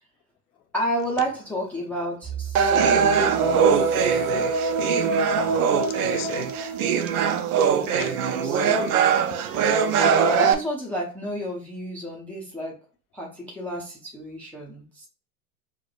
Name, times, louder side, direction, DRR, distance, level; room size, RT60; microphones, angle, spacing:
voice 1, 0.7-4.0 4.3-4.4 7.8-9.0 9.9-12.8 13.1-15.1, right 1 dB, 5° left, 0.6 m, -31 dB
Bowed string instrument, 2.2-6.4, right 10 dB, 30° right, 1.2 m, -41 dB
sound 1, 2.6-10.5, right 6 dB, 70° right, 0.6 m, -21 dB
sound 2, 2.8-3.3 5.1-5.6 7.0-7.4, right 7 dB, 50° right, 1.1 m, -42 dB
voice 2, 5.1-6.7 8.0-8.2 9.5-9.9, left 11 dB, 70° left, 0.6 m, -40 dB
4.7 x 2.1 x 2.4 m
hypercardioid pair, 105°, 46 cm